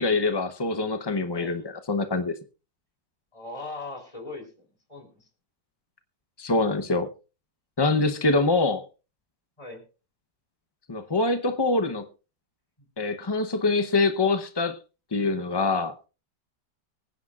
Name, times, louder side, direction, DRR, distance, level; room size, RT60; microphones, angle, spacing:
voice 1, 0.0-2.3 6.4-7.1 7.8-8.8 10.9-12.0 13.0-14.8 15.1-15.9, left 3 dB, 40° left, 0.3 m, -24 dB
voice 2, 3.3-5.3 9.6-9.8, left 3 dB, 20° left, 3.5 m, -40 dB
25.0 x 10.0 x 2.4 m
omnidirectional pair, 1.8 m